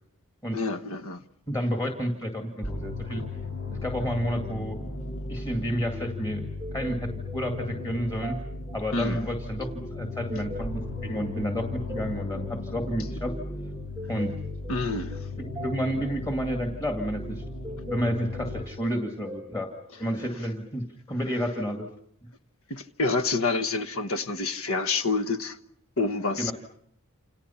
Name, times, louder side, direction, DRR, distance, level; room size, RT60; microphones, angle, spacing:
voice 1, 0.5-1.2 8.9-9.3 14.7-15.3 22.7-25.6 26.0-26.5, left 3 dB, 65° left, 1.3 m, -28 dB
voice 2, 1.5-3.2 3.7-4.8 5.3-6.4 6.7-8.4 8.7-13.3 14.1-14.3 15.6-17.4 17.8-19.7 20.0-21.9 26.4-26.5, equal, 15° left, 2.1 m, -30 dB
sound 1, 2.6-18.6, left 2 dB, 85° left, 3.0 m, -36 dB
sound 2, 5.9-20.7, equal, 15° right, 1.1 m, -44 dB
29.0 x 28.5 x 5.7 m
head